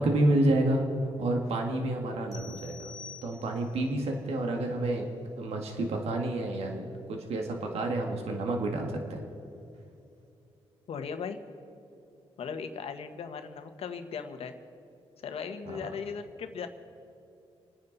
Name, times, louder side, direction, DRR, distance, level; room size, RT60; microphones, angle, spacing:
voice 1, 0.0-2.9 3.2-5.1 5.4-9.2 15.7-15.9, right 1 dB, 75° right, 2 dB, 1.9 m, -29 dB
sound 1, 2.3-3.9, left 5 dB, 30° left, 2.3 m, -47 dB
voice 2, 10.9-11.4 12.4-14.5 15.2-16.7, left 6 dB, 65° left, 7 dB, 1.3 m, -37 dB
29.0 x 9.8 x 4.1 m, 2.6 s
cardioid pair, 85°, 11 cm